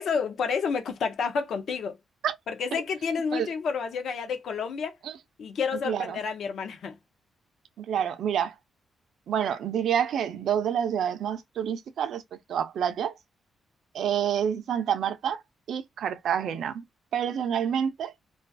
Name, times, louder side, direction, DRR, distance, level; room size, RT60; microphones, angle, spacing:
voice 1, 0.0-2.0 2.5-5.0 5.4-7.0, left 5 dB, 60° left, 0.5 m, -30 dB
voice 2, 5.9-6.2 7.8-8.6 9.3-12.2 12.5-13.1 13.9-15.4 15.7-16.8 17.1-18.1, right 8 dB, 65° right, 0.3 m, -28 dB
2.3 x 2.3 x 2.4 m
wide cardioid pair, 170°, 0 cm